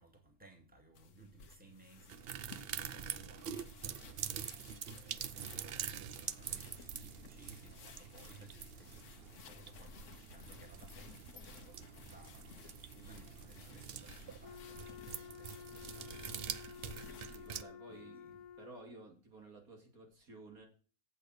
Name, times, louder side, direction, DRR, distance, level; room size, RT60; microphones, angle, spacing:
voice 1, 0.0-16.3 16.6-17.0 17.9-18.4, right 3 dB, 5° right, 2.1 m, -60 dB
sound 1, 0.9-17.4, left 5 dB, 60° left, 1.2 m, -57 dB
sound 2, 2.1-17.6, right 8 dB, 60° right, 0.7 m, -45 dB
Wind instrument woodwind instrument, 14.4-19.1, left 7 dB, 85° left, 1.1 m, -52 dB
voice 2, 17.3-20.6, right 3 dB, 80° right, 2.9 m, -55 dB
8.2 x 6.7 x 6.5 m
omnidirectional pair, 1.5 m